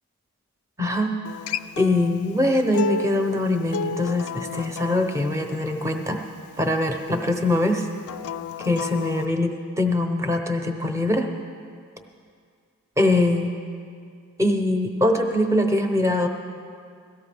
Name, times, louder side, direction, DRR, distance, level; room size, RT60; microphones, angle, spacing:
voice 1, 0.8-1.1 1.8-6.2 6.6-7.9 8.6-11.3 13.0-13.5 14.4-16.3, left 1 dB, 15° right, 4 dB, 0.8 m, -22 dB
Acoustic guitar, 1.2-6.4 8.0-9.3, left 5 dB, 75° left, 0.3 m, -32 dB
17.5 x 13.5 x 3.4 m, 2.2 s
head